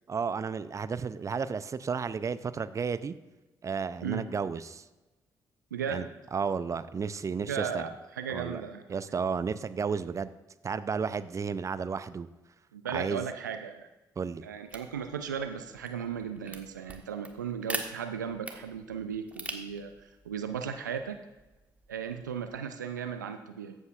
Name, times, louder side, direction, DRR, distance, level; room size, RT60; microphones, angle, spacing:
voice 1, 0.1-3.1 3.6-4.8 5.9-7.9 8.3-8.6 8.9-10.3 10.6-12.3 12.9-13.3 14.2-14.4, right 5 dB, 35° right, 14 dB, 0.5 m, -33 dB
voice 2, 5.7-6.1 7.5-8.8 12.7-13.9 14.4-21.2 21.9-23.7, right 7 dB, 90° right, 8 dB, 0.4 m, -36 dB
sound 1, 14.7-22.6, right 2 dB, 15° right, 1.2 m, -44 dB
14.5 x 8.1 x 2.4 m, 1.1 s
figure-of-eight pair, 40°, 10 cm